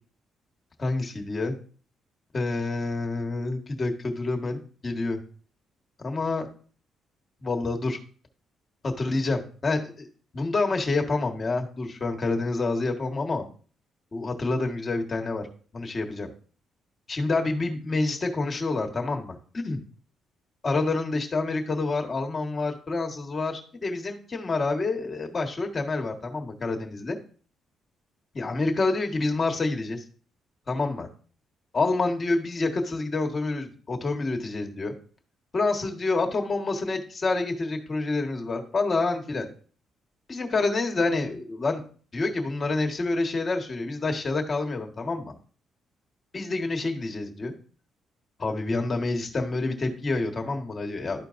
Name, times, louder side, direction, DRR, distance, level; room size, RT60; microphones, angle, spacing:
voice 1, 0.8-1.5 2.3-5.2 6.0-6.5 7.4-8.0 8.8-10.1 10.3-13.4 14.1-15.5 15.7-16.3 17.1-19.8 20.6-27.2 28.3-30.0 30.7-31.1 31.7-34.9 35.5-39.5 40.3-41.8 42.1-45.3 46.3-47.5 48.4-51.3, left 3 dB, 35° left, 2 dB, 1.6 m, -28 dB
12.5 x 4.5 x 2.6 m, 0.42 s
cardioid pair, 90°, 0 cm